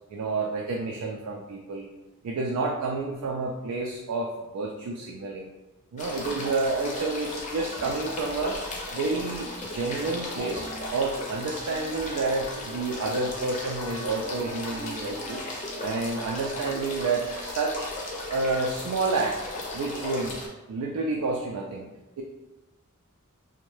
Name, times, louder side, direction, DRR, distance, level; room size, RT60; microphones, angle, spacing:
voice 1, 0.1-1.9 2.2-5.5 5.9-8.6 8.9-10.7 10.9-15.4 15.8-17.9 18.3-19.4 19.7-20.4 20.7-21.9 22.2-22.3, right 3 dB, 85° right, 0 dB, 0.3 m, -29 dB
sound 1, 6.0-20.5, left 2 dB, 35° left, 0.5 m, -36 dB
Wind instrument woodwind instrument, 10.0-17.1, equal, 40° right, 0.7 m, -45 dB
2.6 x 2.1 x 3.1 m, 1.1 s
head